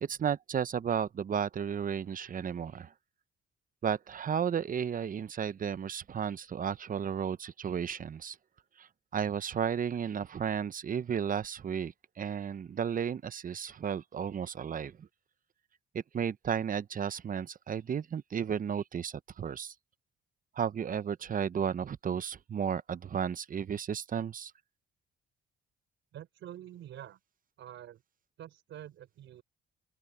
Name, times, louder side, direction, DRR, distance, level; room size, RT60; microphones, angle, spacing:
voice 1, 0.0-2.9 3.8-8.4 8.8-8.9 9.1-15.1 15.9-19.7 20.6-24.5, right 7 dB, 45° right, 0.9 m, -33 dB
voice 2, 26.1-27.2 27.6-28.0 28.4-29.4, right 11 dB, 75° right, 4.0 m, -47 dB
open air
cardioid pair, 90°, 20 cm